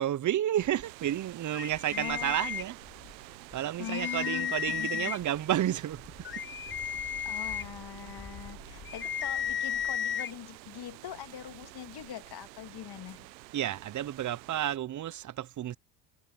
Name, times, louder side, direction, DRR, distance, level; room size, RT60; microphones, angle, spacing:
voice 1, 0.0-2.8 3.5-6.0 7.4-7.6 9.0-9.1 13.5-15.8, right 12 dB, 35° right, 0.9 m, -31 dB
sound 1, 0.8-14.8, right 20 dB, 85° right, 1.0 m, -49 dB
sound 2, 1.5-3.1 3.5-3.6 3.8-5.4 5.9-10.3, left 8 dB, 25° left, 0.7 m, -34 dB
voice 2, 1.9-2.5 3.8-5.1 7.2-13.3, left 10 dB, 50° left, 2.5 m, -42 dB
hypercardioid pair, 70°, 50 cm